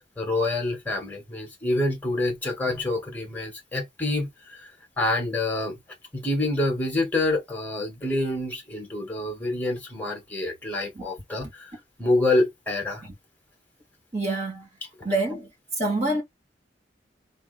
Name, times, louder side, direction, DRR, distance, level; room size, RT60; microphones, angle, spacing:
voice 1, 0.2-4.7 5.0-5.8 6.1-11.7 12.0-13.0, left 2 dB, 10° left, 1.8 m, -27 dB
voice 2, 14.1-14.7 15.0-15.5 15.8-16.2, right 2 dB, 35° right, 2.6 m, -26 dB
3.8 x 3.5 x 3.4 m
head